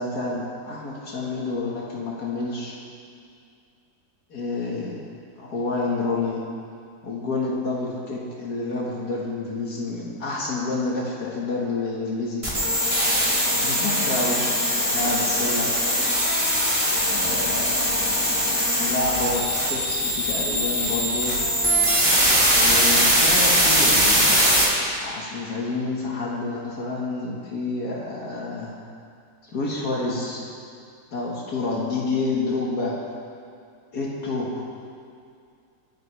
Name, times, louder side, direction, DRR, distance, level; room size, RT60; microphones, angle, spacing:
voice 1, 0.0-2.8 4.3-5.0 5.4-6.4 7.0-12.5 13.3-15.7 17.1-17.7 18.8-21.4 22.5-24.4 25.0-28.7 29.4-30.5 31.1-33.0 33.9-34.6, left 3 dB, 75° left, -4 dB, 2.3 m, -28 dB
sound 1, 12.4-24.6, equal, 20° right, 3.0 m, -21 dB
23.5 x 10.5 x 3.4 m, 2.4 s
omnidirectional pair, 1.7 m